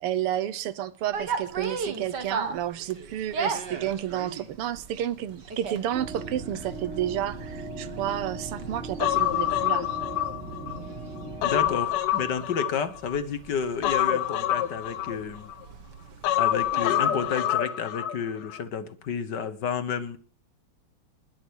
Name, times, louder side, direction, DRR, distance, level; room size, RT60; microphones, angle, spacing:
voice 1, 0.0-9.9, right 11 dB, 90° right, 1.9 m, -31 dB
sound 1, 1.1-17.4, right 5 dB, 50° right, 2.3 m, -39 dB
sound 2, 5.9-11.7, right 3 dB, 30° right, 4.5 m, -38 dB
Human voice, 9.0-10.8 11.2-13.2 13.8-15.6 16.2-18.2 18.5-18.6, left 12 dB, 85° left, 1.7 m, -26 dB
voice 2, 11.4-15.5 16.4-20.2, left 6 dB, 55° left, 1.7 m, -30 dB
21.0 x 7.0 x 6.3 m
omnidirectional pair, 2.4 m